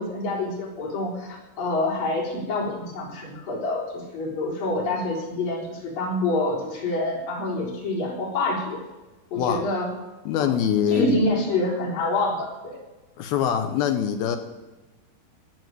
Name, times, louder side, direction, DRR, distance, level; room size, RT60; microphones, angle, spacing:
voice 1, 0.0-8.8 9.3-9.9 10.4-10.6 10.9-12.8, left 2 dB, 55° left, -3 dB, 5.7 m, -27 dB
voice 2, 10.3-11.2 13.2-14.4, left 9 dB, 75° left, 7 dB, 2.6 m, -23 dB
18.5 x 7.6 x 9.4 m, 1.1 s
omnidirectional pair, 4.8 m